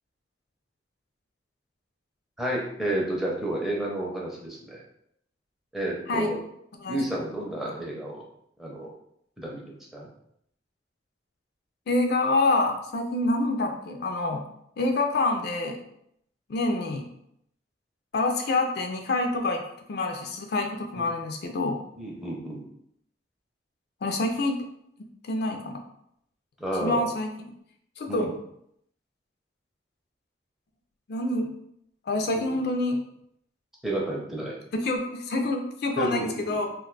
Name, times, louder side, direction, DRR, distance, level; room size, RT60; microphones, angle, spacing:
voice 1, 2.4-4.8 5.7-6.4 6.9-8.2 8.6-8.9 9.4-10.1 20.9-21.1 22.0-22.6 26.6-27.1 28.1-28.3 32.3-32.5 33.8-34.6 36.0-36.6, right 1 dB, ahead, -3 dB, 0.5 m, -31 dB
voice 2, 11.9-14.4 14.8-15.8 16.5-17.1 18.1-19.6 19.9-21.8 24.0-24.6 25.3-25.8 26.8-27.3 28.0-28.3 31.1-31.5 32.1-33.0 34.7-36.7, left 2 dB, 60° left, 3 dB, 0.4 m, -26 dB
2.4 x 2.2 x 3.8 m, 0.74 s
head